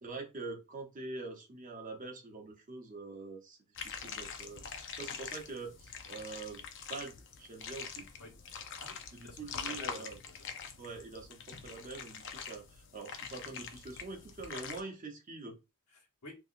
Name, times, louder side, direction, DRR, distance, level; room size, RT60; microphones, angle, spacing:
voice 1, 0.0-6.6 6.9-8.1 9.1-10.2 10.8-15.6, right 3 dB, 35° right, 0.8 m, -45 dB
sound 1, 3.8-14.8, left 6 dB, 55° left, 0.5 m, -44 dB
voice 2, 8.2-10.0 10.4-10.5 15.9-16.3, left 2 dB, 85° left, 1.4 m, -52 dB
3.5 x 2.8 x 2.4 m
head